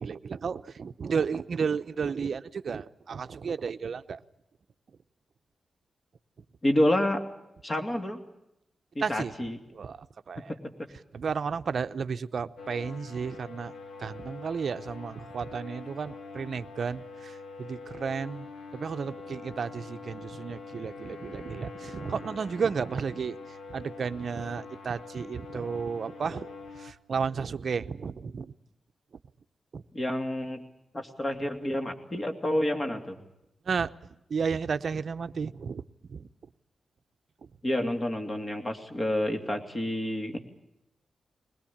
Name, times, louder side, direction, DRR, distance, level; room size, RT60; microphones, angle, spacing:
voice 1, 0.0-4.2 9.0-9.3 9.7-10.5 11.1-13.7 14.0-18.5 18.7-28.5 29.7-29.8 33.7-33.9 34.3-35.8 36.1-36.3, right 6 dB, 55° right, 11 dB, 0.8 m, -33 dB
voice 2, 6.6-7.2 7.6-8.2 8.9-9.6 29.9-30.6 30.9-33.2 37.6-40.4, left 1 dB, 25° left, 5 dB, 2.8 m, -28 dB
sound 1, 12.6-26.9, left 4 dB, 75° left, 1.9 m, -44 dB
21.0 x 21.0 x 8.7 m, 0.86 s
wide cardioid pair, 130°, 0 cm